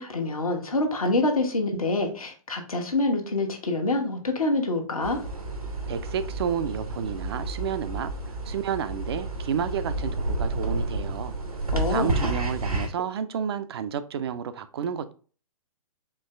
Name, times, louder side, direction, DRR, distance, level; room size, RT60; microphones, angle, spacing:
voice 1, 0.0-5.2 11.7-12.2, left 2 dB, 75° left, 1.1 m, -26 dB
sound 1, 5.0-12.9, right 2 dB, 90° right, 1.0 m, -30 dB
voice 2, 5.9-11.3 11.9-15.1, right 8 dB, 45° right, 0.4 m, -31 dB
4.5 x 2.9 x 3.3 m
figure-of-eight pair, 120°, 18 cm